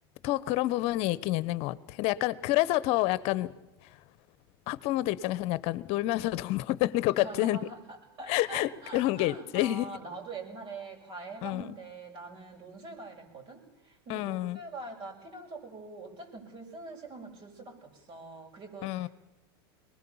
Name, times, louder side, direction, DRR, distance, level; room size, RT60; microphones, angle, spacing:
voice 1, 0.2-3.5 4.7-7.6 8.3-9.9 11.4-11.7 14.1-14.6 18.8-19.1, left 16 dB, 55° left, 18 dB, 1.0 m, -28 dB
voice 2, 7.1-19.1, right 3 dB, 45° right, 1 dB, 7.3 m, -44 dB
23.0 x 20.5 x 7.2 m, 1.0 s
hypercardioid pair, 110°, 13 cm